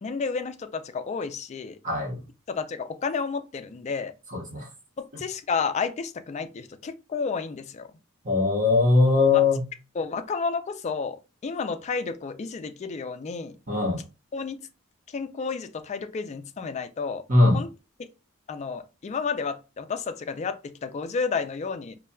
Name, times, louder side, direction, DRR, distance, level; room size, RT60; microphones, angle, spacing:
voice 1, 0.0-1.8 2.5-4.1 5.0-7.9 9.3-9.4 9.9-11.2 11.4-13.6 14.3-14.6 15.1-17.2 17.5-17.7 18.5-21.9, left 5 dB, 35° left, 0.3 m, -31 dB
voice 2, 1.8-2.2 4.3-4.7 8.2-9.7 13.7-14.0 17.3-17.6, left 3 dB, 40° right, 1.1 m, -20 dB
4.2 x 2.2 x 2.2 m
head